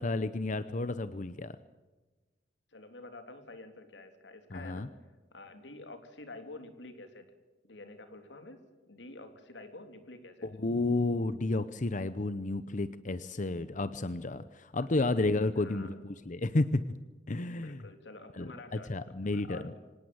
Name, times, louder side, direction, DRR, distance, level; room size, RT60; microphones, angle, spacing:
voice 1, 0.0-1.6 4.5-4.9 10.4-16.8 17.3-17.8 18.3-19.6, left 2 dB, 45° left, 13 dB, 0.8 m, -31 dB
voice 2, 2.7-4.9 5.3-7.3 7.6-10.5 14.8-14.9 15.5-16.0 17.5-20.0, left 2 dB, 85° left, 7 dB, 3.4 m, -49 dB
25.5 x 18.5 x 7.9 m, 1.2 s
head